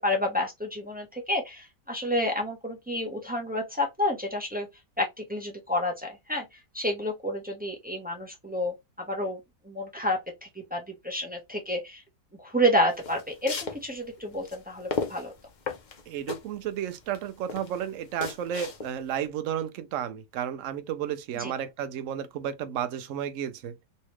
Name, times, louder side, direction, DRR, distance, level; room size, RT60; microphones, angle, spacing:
voice 1, 0.0-4.7 5.0-6.4 6.7-8.7 9.1-9.4 9.7-10.2 10.7-12.0 12.4-15.3 21.4-21.5, left 1 dB, 15° right, 0.4 m, -29 dB
sound 1, 12.9-19.2, left 5 dB, 65° left, 0.4 m, -36 dB
voice 2, 16.1-23.7, right 9 dB, 70° right, 0.8 m, -32 dB
3.1 x 2.8 x 3.0 m
omnidirectional pair, 1.7 m